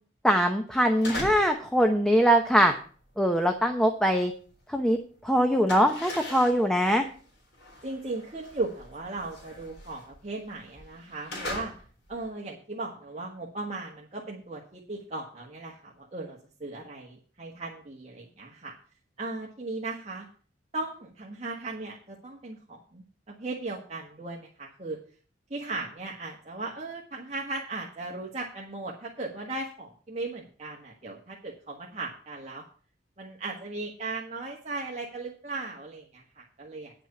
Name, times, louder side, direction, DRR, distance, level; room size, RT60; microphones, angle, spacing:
voice 1, 0.2-2.7 3.2-4.3 4.7-5.0 5.2-7.0, equal, 5° left, 4 dB, 0.8 m, -22 dB
sound 1, 0.8-1.6 1.9-4.9 5.1-12.3, left 1 dB, 75° left, 3.7 m, -41 dB
voice 2, 7.8-11.7 12.1-18.7 19.2-20.3 20.7-25.0 25.5-32.6 33.2-36.9, right 3 dB, 40° right, -2 dB, 1.5 m, -37 dB
9.6 x 6.1 x 6.8 m, 0.42 s
head